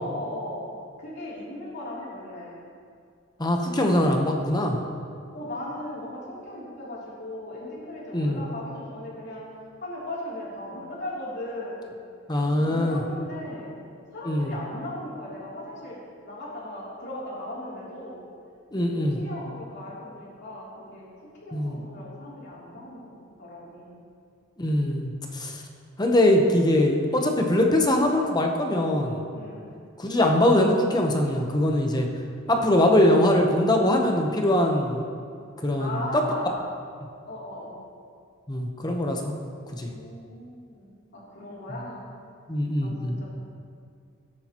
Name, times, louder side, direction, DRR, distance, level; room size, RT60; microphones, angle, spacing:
voice 1, 0.0-0.7 1.0-2.6 5.3-9.4 9.8-11.9 12.4-13.7 14.1-16.0 16.2-18.2 18.8-21.1 21.4-24.0 29.3-29.7 32.5-32.7 35.7-36.5 37.3-37.8 39.9-42.0 42.8-43.2, left 1 dB, 55° left, -6 dB, 3.1 m, -38 dB
voice 2, 3.4-4.8 8.1-8.4 12.3-13.0 14.2-14.5 18.7-19.2 21.5-21.8 24.6-25.6 26.0-29.2 30.0-32.1 32.5-35.0 35.6-36.2 38.5-39.3 39.7-39.9 42.5-43.2, left 1 dB, 20° left, 2 dB, 0.9 m, -22 dB
17.5 x 8.7 x 3.0 m, 2.3 s
head